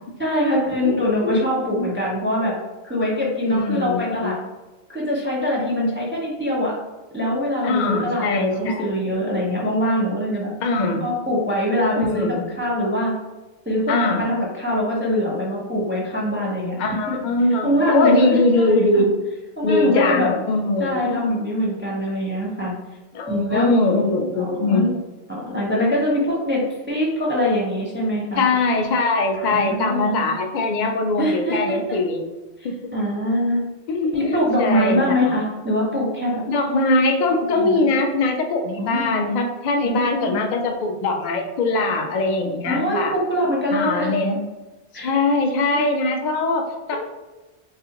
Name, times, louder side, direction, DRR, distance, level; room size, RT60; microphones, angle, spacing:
voice 1, 0.2-2.5 2.8-4.4 4.9-6.7 7.1-10.5 11.0-13.1 13.7-17.2 17.6-19.0 19.6-20.3 20.8-22.7 23.3-23.7 24.3-24.9 25.3-26.6 26.9-28.5 29.3-30.3 31.2-32.0 32.6-33.6 34.1-36.4 37.5-37.9 38.8-39.1 39.8-40.4 42.7-44.1 44.9-45.2 45.7-45.8, equal, 15° right, -5 dB, 0.6 m, -23 dB
voice 2, 3.4-4.4 7.6-8.9 10.6-11.1 12.0-12.4 13.9-14.2 16.8-19.1 19.6-21.0 23.1-24.9 28.4-32.2 32.6-32.9 33.9-35.3 36.5-43.1 43.7-44.4 44.9-47.0, left 2 dB, 55° left, 3 dB, 0.5 m, -21 dB
3.5 x 2.4 x 2.8 m, 1.1 s
omnidirectional pair, 1.1 m